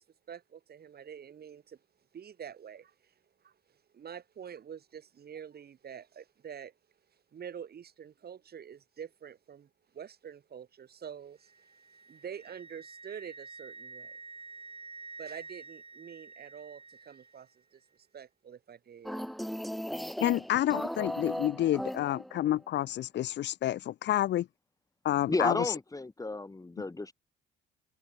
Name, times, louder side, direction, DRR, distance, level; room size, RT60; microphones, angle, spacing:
voice 1, 0.0-1.8 2.1-3.1 3.4-6.7 7.3-9.7 9.9-11.8 12.1-14.2 15.2-19.2, right 8 dB, 50° right, 2.7 m, -47 dB
Wind instrument woodwind instrument, 11.5-17.4, right 4 dB, 30° right, 4.2 m, -49 dB
sound 1, 19.0-22.6, equal, ahead, 0.4 m, -37 dB
voice 2, 20.2-24.5 25.0-25.7, left 13 dB, 60° left, 0.6 m, -29 dB
voice 3, 25.3-27.1, left 2 dB, 15° left, 1.5 m, -32 dB
open air
cardioid pair, 90°, 20 cm